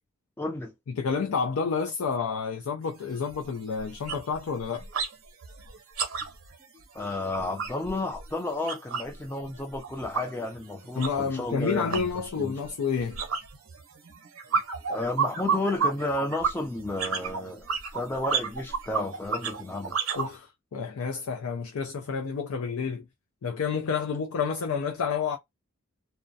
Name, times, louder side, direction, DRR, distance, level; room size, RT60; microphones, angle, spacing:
voice 1, 0.4-0.7 6.9-12.1 12.4-12.5 14.9-17.7 17.9-20.0, left 2 dB, 10° left, 0.4 m, -32 dB
voice 2, 1.0-4.8 11.0-13.2 20.2-23.1 23.4-25.4, left 5 dB, 90° left, 0.4 m, -29 dB
sound 1, 2.8-2.9 3.3-3.5 3.8-5.1 5.4-9.2 9.5-20.3, right 5 dB, 70° right, 0.7 m, -32 dB
2.3 x 2.1 x 2.6 m
head